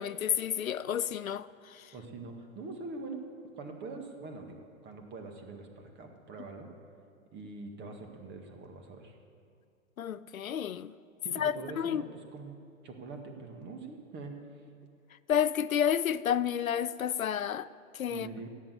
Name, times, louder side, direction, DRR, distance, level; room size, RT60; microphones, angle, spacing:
voice 1, 0.0-1.5 10.0-10.9 11.4-12.0 15.3-17.7 17.9-18.3, left 9 dB, 80° left, 0.6 m, -30 dB
voice 2, 1.9-3.2 3.5-6.7 7.3-9.1 11.2-12.6 12.8-14.4 18.1-18.5, right 3 dB, 25° right, 1.8 m, -44 dB
15.5 x 8.6 x 8.3 m
figure-of-eight pair, 105°, 40 cm